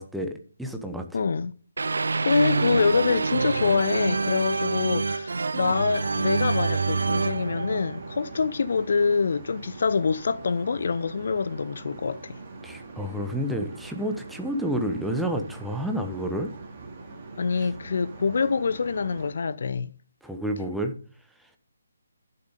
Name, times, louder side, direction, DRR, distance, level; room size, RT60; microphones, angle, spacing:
voice 1, 0.0-1.2 12.6-16.5 20.2-20.9, equal, ahead, 1.0 m, -30 dB
voice 2, 1.1-1.5 2.2-12.4 17.4-19.9, left 5 dB, 50° left, 0.6 m, -25 dB
sound 1, 1.8-8.7, right 4 dB, 60° right, 0.5 m, -27 dB
rear ST int idling plane amb english voice, 6.9-19.3, right 3 dB, 30° right, 2.6 m, -43 dB
11.5 x 7.0 x 5.2 m
figure-of-eight pair, 145°, 0 cm